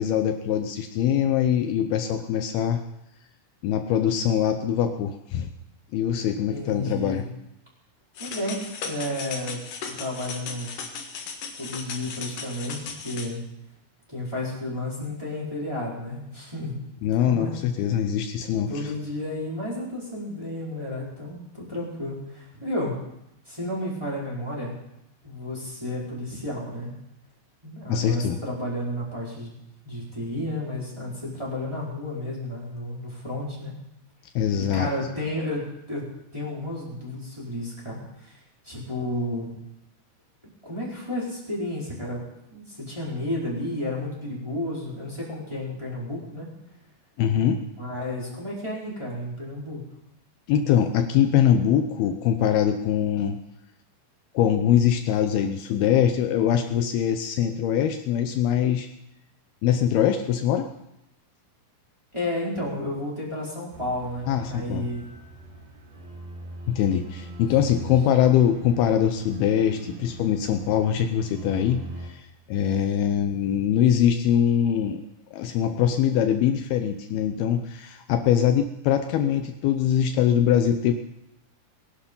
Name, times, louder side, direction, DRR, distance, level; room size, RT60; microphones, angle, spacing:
voice 1, 0.0-2.8 3.6-5.5 5.9-7.3 17.0-18.9 27.9-28.4 34.4-34.9 47.2-47.6 50.5-53.4 54.3-58.9 59.6-60.7 64.3-64.9 66.7-75.0 75.3-80.9, left 9 dB, 75° left, 6 dB, 2.6 m, -23 dB
voice 2, 6.5-7.2 8.2-10.7 11.6-13.4 14.1-16.8 17.3-17.5 18.7-23.0 23.5-24.8 25.2-26.9 27.6-29.5 29.8-33.7 34.7-38.4 38.6-39.5 40.6-42.2 42.5-46.5 47.8-49.8 62.1-65.1 67.6-67.9, left 1 dB, 5° right, -6 dB, 4.4 m, -32 dB
sound 1, 8.1-13.3, left 5 dB, 60° left, 3.1 m, -36 dB
sound 2, 63.7-72.1, right 1 dB, 90° right, 5.3 m, -42 dB
19.5 x 11.5 x 5.4 m, 0.82 s
omnidirectional pair, 4.6 m